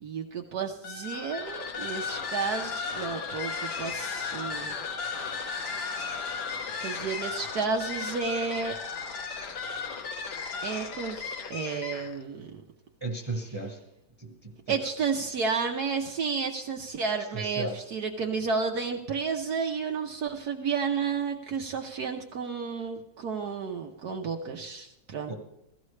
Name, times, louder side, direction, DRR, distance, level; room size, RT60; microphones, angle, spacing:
voice 1, 0.0-4.7 6.7-8.8 10.6-12.5 14.7-25.3, right 5 dB, 60° right, 2 dB, 1.3 m, -31 dB
sound 1, 0.8-12.2, left 5 dB, 65° left, 1.6 m, -35 dB
voice 2, 13.0-13.8 14.2-14.8 17.3-17.8 25.3-25.4, right 2 dB, 15° right, 2 dB, 1.2 m, -35 dB
16.5 x 14.5 x 3.2 m, 0.88 s
omnidirectional pair, 2.0 m